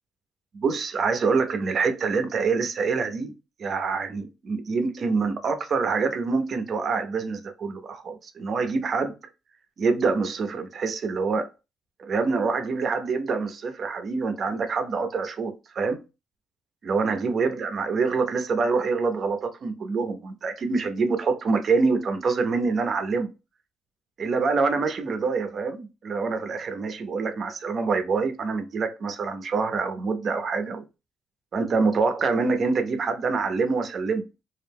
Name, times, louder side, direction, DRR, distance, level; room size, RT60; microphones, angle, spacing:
voice 1, 0.5-3.3 3.6-9.1 9.8-11.5 12.0-16.0 16.8-23.3 24.2-30.8 31.5-34.3, right 4 dB, 50° right, 0.5 m, -26 dB
2.4 x 2.0 x 3.4 m
cardioid pair, 90°, 0 cm